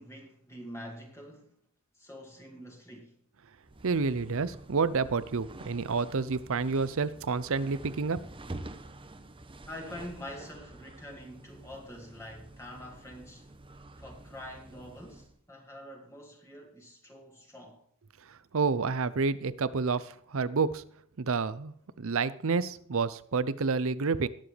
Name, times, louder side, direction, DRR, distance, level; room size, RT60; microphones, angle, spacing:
voice 1, 0.0-1.6 1.9-3.2 9.7-17.8, left 1 dB, 15° left, 2.1 m, -46 dB
sound 1, 3.6-15.4, right 2 dB, 25° right, 0.9 m, -48 dB
voice 2, 3.8-8.2 18.3-20.8 21.2-24.3, right 4 dB, 65° right, 0.6 m, -29 dB
19.5 x 7.4 x 3.4 m
head